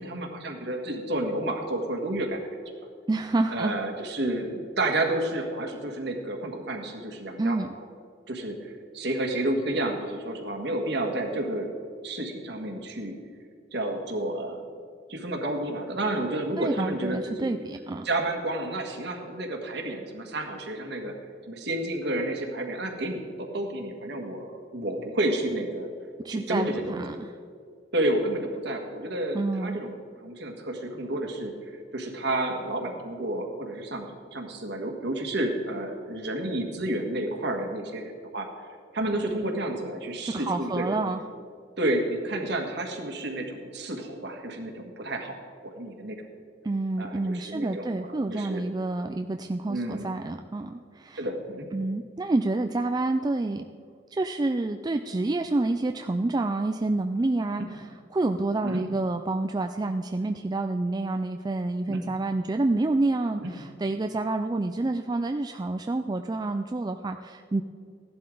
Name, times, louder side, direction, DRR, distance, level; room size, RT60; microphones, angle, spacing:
voice 1, 0.0-2.4 2.7-2.8 3.5-7.6 8.3-11.7 12.0-13.1 13.7-14.6 15.1-17.5 18.0-21.1 21.5-25.9 26.3-27.0 27.9-29.9 30.2-31.5 31.9-38.5 38.9-41.1 41.8-46.3 47.0-47.9 48.2-48.6 49.7-50.1 51.2-51.7 57.6-57.7 58.6-58.8 61.9-62.0 63.4-63.5, right 1 dB, 60° right, 3 dB, 1.7 m, -30 dB
voice 2, 3.1-3.7 7.4-7.7 16.6-18.1 26.2-27.4 29.3-29.8 40.2-41.2 46.6-51.2 51.7-53.6 54.1-67.6, right 2 dB, 20° right, 6 dB, 0.3 m, -28 dB
15.5 x 11.5 x 3.9 m, 2.3 s
head